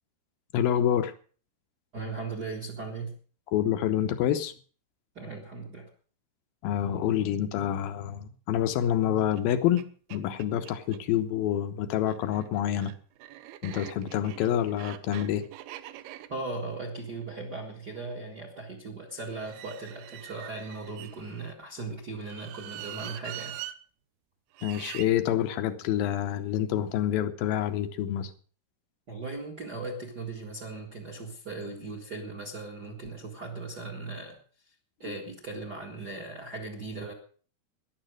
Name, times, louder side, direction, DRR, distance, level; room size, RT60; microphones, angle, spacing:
voice 1, 0.5-1.1 3.5-4.5 6.6-9.8 10.1-12.9 13.6-15.4 24.6-28.3 35.1-35.2, left 11 dB, 75° left, 10 dB, 2.5 m, -27 dB
voice 2, 1.9-3.1 5.1-5.9 16.3-23.6 29.1-34.4 35.0-37.1, right 3 dB, 40° right, 3 dB, 1.5 m, -38 dB
sound 1, 9.3-9.4 9.8-9.9 10.1-11.0 11.9-18.1 19.3-21.5 22.2-23.8 24.5-25.1, right 14 dB, 80° right, 2.7 m, -44 dB
13.0 x 11.0 x 6.3 m, 0.42 s
omnidirectional pair, 4.6 m